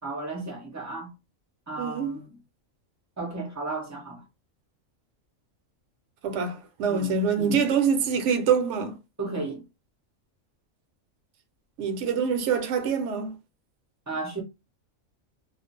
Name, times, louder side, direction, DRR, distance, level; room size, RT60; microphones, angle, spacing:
voice 1, 0.0-1.1 1.7-2.4 3.2-4.2 6.9-7.2 9.2-9.6 14.1-14.4, right 3 dB, 20° right, 0.4 m, -34 dB
voice 2, 1.8-2.2 6.2-8.9 11.8-13.4, right 6 dB, 70° right, 0.8 m, -25 dB
2.4 x 2.0 x 2.5 m
omnidirectional pair, 1.4 m